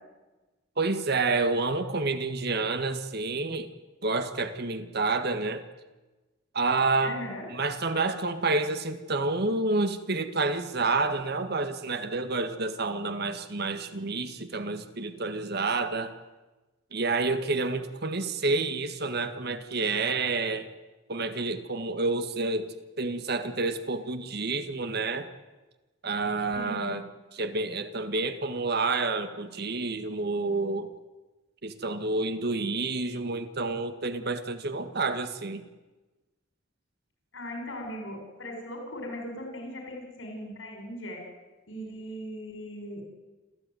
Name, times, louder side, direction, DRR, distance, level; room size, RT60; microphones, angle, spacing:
voice 1, 0.8-3.7 4.0-5.6 6.5-7.2 7.5-16.1 16.9-20.7 21.1-22.7 23.0-25.3 26.0-27.0 27.3-30.9 31.6-35.6, right 3 dB, 55° right, 9 dB, 1.8 m, -29 dB
voice 2, 7.0-7.5 26.5-27.0 37.3-41.3 41.7-43.0, equal, 85° left, 2 dB, 6.5 m, -38 dB
27.5 x 15.0 x 9.3 m, 1.2 s
head